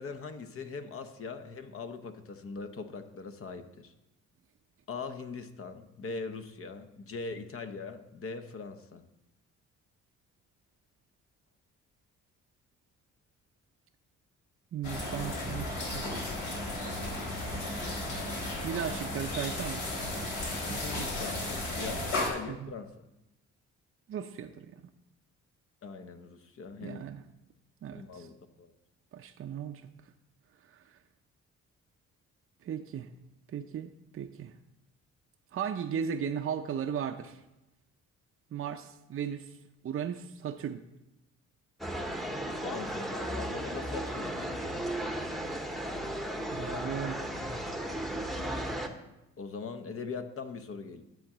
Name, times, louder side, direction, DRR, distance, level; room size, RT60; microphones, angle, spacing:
voice 1, 0.0-3.9 4.9-9.0 18.0-18.2 20.7-23.0 25.8-27.0 27.9-28.7 42.6-44.8 49.4-51.0, left 4 dB, 45° left, 8 dB, 0.9 m, -41 dB
voice 2, 14.7-16.0 18.6-19.8 20.7-21.1 21.9-22.0 22.5-22.7 24.1-24.8 26.8-27.2 27.8-28.3 29.1-29.8 30.7-31.0 32.6-33.1 33.5-34.5 35.5-37.4 38.5-39.6 39.8-40.8 46.5-47.2, right 8 dB, 45° right, 5 dB, 0.6 m, -36 dB
sound 1, 14.8-22.3, left 2 dB, 80° left, 3.1 m, -34 dB
sound 2, 41.8-48.9, right 1 dB, ahead, 0.9 m, -35 dB
10.5 x 3.8 x 7.3 m, 0.94 s
cardioid pair, 90°, 30 cm